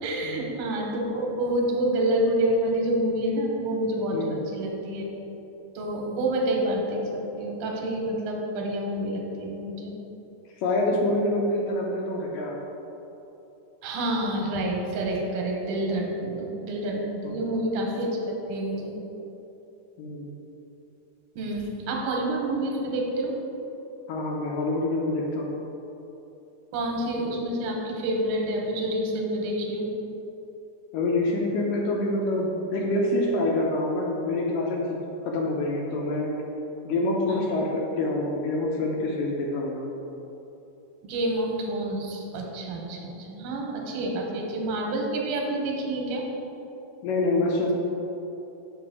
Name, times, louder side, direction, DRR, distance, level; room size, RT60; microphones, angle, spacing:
voice 1, 0.0-5.1 5.8-7.1 7.4-9.9 13.8-18.9 21.4-23.4 26.7-29.9 37.3-37.4 41.1-46.3, right 1 dB, 80° right, 0 dB, 2.4 m, -28 dB
voice 2, 10.6-12.6 17.2-17.4 20.0-20.3 24.1-25.5 30.9-35.0 35.3-36.3 36.8-39.8 47.0-47.7, left 2 dB, 85° left, -2 dB, 2.3 m, -26 dB
5.9 x 5.4 x 4.7 m, 3.0 s
omnidirectional pair, 3.8 m